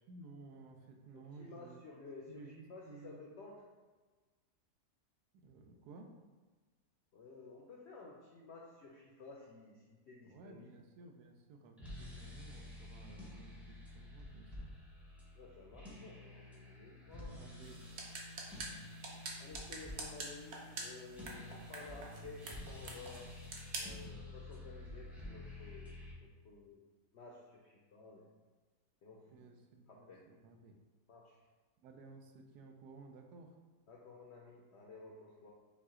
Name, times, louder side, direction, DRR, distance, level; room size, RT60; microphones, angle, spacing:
voice 1, 0.1-1.8 2.3-3.2 5.4-6.1 10.2-14.7 17.0-17.8 21.9-22.7 29.3-30.8 31.8-33.5, right 3 dB, 90° right, 4 dB, 1.1 m, -56 dB
voice 2, 1.1-3.6 7.1-10.7 15.3-17.3 19.4-23.2 23.8-25.9 26.2-26.8 27.1-28.3 29.0-29.6 29.9-30.3 31.1-31.4 33.9-35.5, left 3 dB, 70° left, -2 dB, 0.6 m, -54 dB
sound 1, 11.8-26.1, left 2 dB, ahead, 0.4 m, -50 dB
sound 2, 17.6-24.1, right 3 dB, 55° right, 0.8 m, -47 dB
5.6 x 2.2 x 3.6 m, 1.3 s
omnidirectional pair, 1.6 m